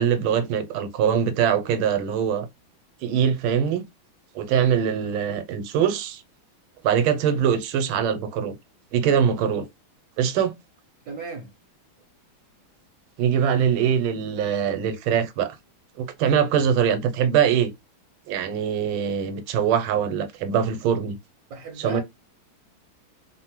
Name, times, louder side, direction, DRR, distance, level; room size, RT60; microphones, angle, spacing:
voice 1, 0.0-2.5 3.0-3.8 4.3-6.2 6.8-8.5 8.9-9.7 10.2-10.5 13.2-15.6 16.0-17.7 18.3-21.2 21.8-22.0, right 8 dB, 85° right, 1.4 m, -22 dB
voice 2, 11.1-11.5 21.5-22.0, right 5 dB, 70° right, 0.9 m, -35 dB
3.5 x 2.1 x 2.8 m
omnidirectional pair, 2.2 m